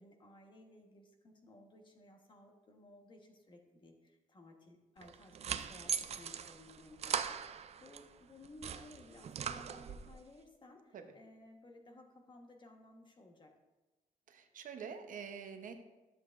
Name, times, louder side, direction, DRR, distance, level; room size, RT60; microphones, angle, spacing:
voice 1, 0.0-13.5, left 2 dB, 30° left, 3 dB, 1.2 m, -58 dB
sound 1, 5.0-8.0 8.4-10.2, right 7 dB, 45° right, 0.4 m, -40 dB
voice 2, 14.3-15.7, right 6 dB, 65° right, 6 dB, 0.8 m, -46 dB
12.0 x 7.7 x 2.5 m, 1.1 s
cardioid pair, 135°, 15 cm